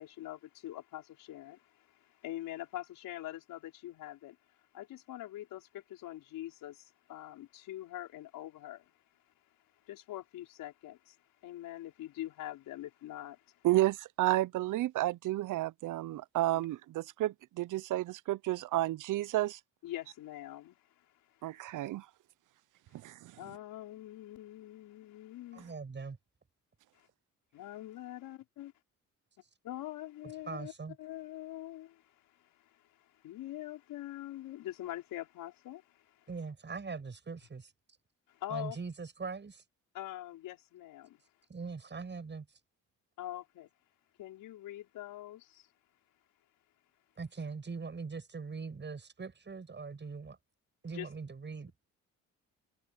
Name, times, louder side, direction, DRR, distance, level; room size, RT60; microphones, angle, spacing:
voice 1, 0.0-4.4 4.7-8.9 9.8-11.2 11.4-13.7 16.5-16.6 19.8-21.6 22.9-23.0 23.4-25.7 26.9-27.1 27.5-28.7 29.6-30.7 31.0-36.3 38.3-38.8 39.9-41.2 43.2-43.7 44.2-45.7 50.9-51.1, left 14 dB, 85° left, 5.0 m, -44 dB
voice 2, 13.6-19.6 21.4-22.1 22.9-23.3, right 16 dB, 70° right, 0.6 m, -31 dB
voice 3, 25.5-26.2 30.5-30.9 36.3-37.7 38.5-39.6 41.5-42.5 47.2-50.4 50.8-51.9, right 4 dB, 35° right, 6.9 m, -41 dB
cardioid pair, 80°, 33 cm